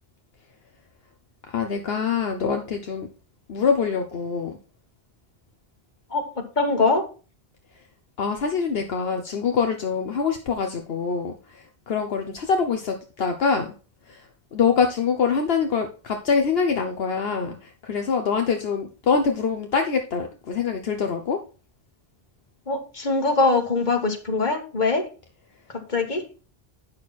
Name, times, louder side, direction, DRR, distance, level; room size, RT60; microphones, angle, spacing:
voice 1, 1.5-3.1 3.5-4.6 8.2-13.7 14.1-21.4, left 5 dB, 70° left, 5 dB, 1.2 m, -24 dB
voice 2, 6.1-7.0 22.7-25.0 25.7-26.2, left 3 dB, 45° left, 3 dB, 1.9 m, -23 dB
9.4 x 6.4 x 4.2 m, 0.35 s
omnidirectional pair, 1.1 m